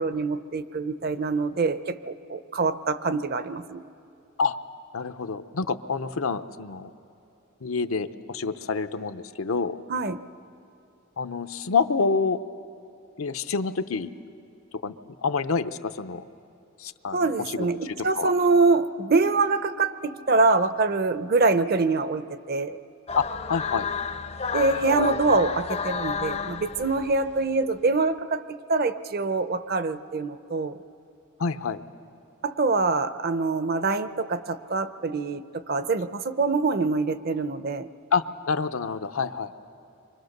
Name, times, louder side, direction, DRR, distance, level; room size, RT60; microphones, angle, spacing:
voice 1, 0.0-3.8 9.9-10.2 17.1-22.8 24.5-30.8 32.4-37.9, right 3 dB, 50° right, 12 dB, 0.7 m, -25 dB
voice 2, 4.9-6.9 7.6-9.8 11.2-12.4 13.2-14.1 14.8-14.9 15.2-16.2 16.8-18.3 23.1-23.9 31.4-31.8 38.1-39.5, left 5 dB, 85° left, 10 dB, 0.8 m, -27 dB
sound 1, 23.1-27.4, left 5 dB, 30° left, 0.5 m, -31 dB
30.0 x 24.5 x 6.6 m, 2.7 s
head